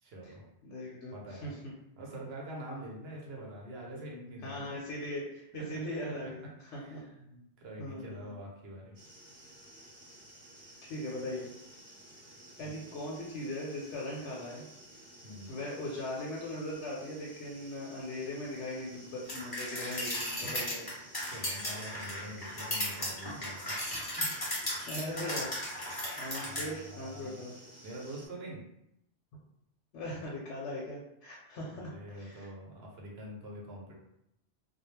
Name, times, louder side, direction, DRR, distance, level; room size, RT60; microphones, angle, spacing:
voice 1, 0.0-0.5 1.1-1.6 2.0-4.7 5.5-5.7 6.0-6.1 6.6-9.0 12.6-12.9 15.2-15.6 21.3-23.8 24.1-24.3 26.4-27.4 27.8-28.6 31.7-33.9, equal, 65° right, -2 dB, 0.9 m, -45 dB
voice 2, 0.6-1.7 4.4-6.4 6.7-7.0 7.8-8.3 10.9-11.5 12.6-14.7 15.5-20.9 24.9-25.5 26.2-27.5 29.9-32.5, left 1 dB, 80° left, -4 dB, 0.9 m, -39 dB
sound 1, 8.9-28.3, right 1 dB, 20° right, 0.9 m, -54 dB
sound 2, 19.3-26.7, left 1 dB, 25° left, 0.6 m, -36 dB
2.3 x 2.0 x 3.1 m, 0.81 s
omnidirectional pair, 1.2 m